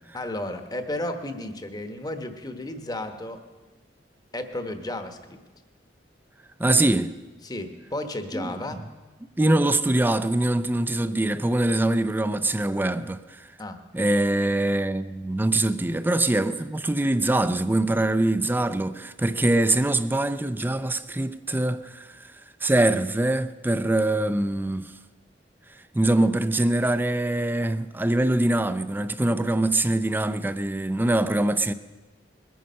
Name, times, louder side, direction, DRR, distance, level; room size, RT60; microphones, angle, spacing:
voice 1, 0.1-3.4 4.3-5.4 7.4-8.9 13.6-13.8, left 1 dB, 20° left, 1.1 m, -33 dB
voice 2, 6.6-7.1 8.3-8.8 9.4-13.5 13.9-22.3 22.6-24.9 25.9-31.7, right 1 dB, 10° right, 0.4 m, -23 dB
21.0 x 9.4 x 5.6 m
head